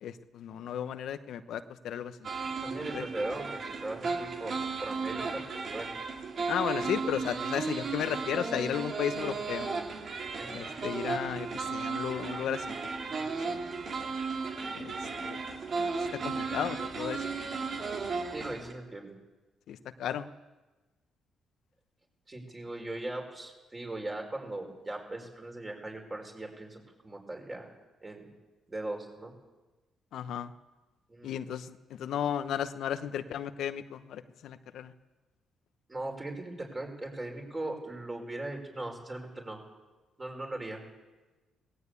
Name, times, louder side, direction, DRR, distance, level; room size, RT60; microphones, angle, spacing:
voice 1, 0.0-2.3 2.9-3.0 6.5-9.8 10.5-12.7 13.2-13.6 14.8-14.9 15.2-15.4 15.8-17.2 19.7-20.3 30.1-30.5 31.2-34.9, left 9 dB, 75° left, 11 dB, 1.0 m, -34 dB
sound 1, 2.2-18.7, right 4 dB, 55° right, 2.4 m, -35 dB
voice 2, 2.6-5.9 10.4-10.7 18.3-19.1 22.3-26.8 27.0-27.7 28.0-28.3 28.7-29.3 31.1-31.4 35.9-39.6 40.2-40.8, right 2 dB, 20° right, 2 dB, 5.2 m, -39 dB
19.0 x 17.0 x 8.4 m, 1.2 s
cardioid pair, 90°, 0 cm